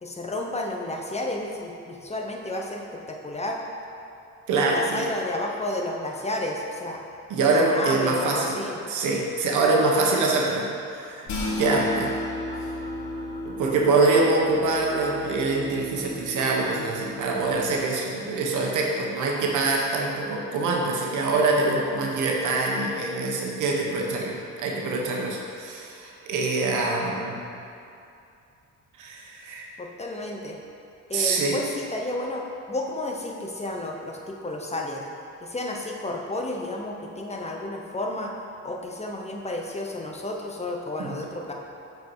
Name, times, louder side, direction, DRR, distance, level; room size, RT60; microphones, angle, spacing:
voice 1, 0.0-3.6 4.5-7.0 7.4-8.8 29.8-30.6 31.1-35.1 35.4-38.3 38.6-41.5, left 1 dB, 20° left, 0 dB, 1.0 m, -31 dB
voice 2, 4.5-5.1 7.3-8.6 8.9-11.3 11.6-12.1 13.4-27.5 29.0-29.7 31.1-31.6 41.0-41.2, right 3 dB, 80° right, -1 dB, 1.3 m, -24 dB
sound 1, 11.3-17.7, left 1 dB, 65° left, 1.8 m, -34 dB
8.0 x 4.7 x 4.8 m, 2.6 s
cardioid pair, 90°, 30 cm